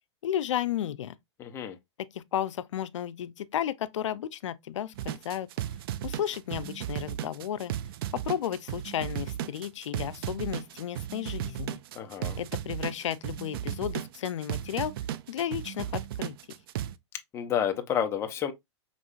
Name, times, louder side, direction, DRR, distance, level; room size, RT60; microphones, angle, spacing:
voice 1, 0.2-1.2 2.1-5.5 6.0-7.7 8.1-11.8 12.4-14.9 15.3-16.4, left 10 dB, 85° left, 0.5 m, -33 dB
voice 2, 1.4-1.8 12.0-12.4 17.3-18.5, left 9 dB, 15° left, 0.6 m, -30 dB
sound 1, 4.9-16.9, right 11 dB, 50° right, 0.4 m, -35 dB
5.3 x 3.1 x 2.4 m
hypercardioid pair, 155°, 15 cm